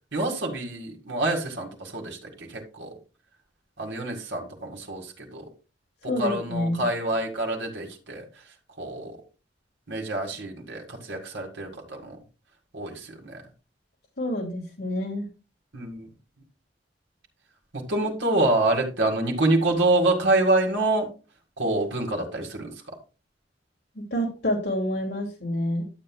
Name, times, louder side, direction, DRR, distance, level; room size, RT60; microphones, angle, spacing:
voice 1, 0.1-2.9 3.8-5.5 6.2-8.2 8.8-9.2 9.9-12.2 12.7-13.4 15.7-16.1 17.7-21.1 21.6-22.7, right 2 dB, 85° right, 1 dB, 2.0 m, -26 dB
voice 2, 6.1-6.9 14.2-15.3 24.1-25.8, left 1 dB, 70° left, -2 dB, 2.5 m, -28 dB
11.5 x 7.8 x 2.3 m, 0.32 s
head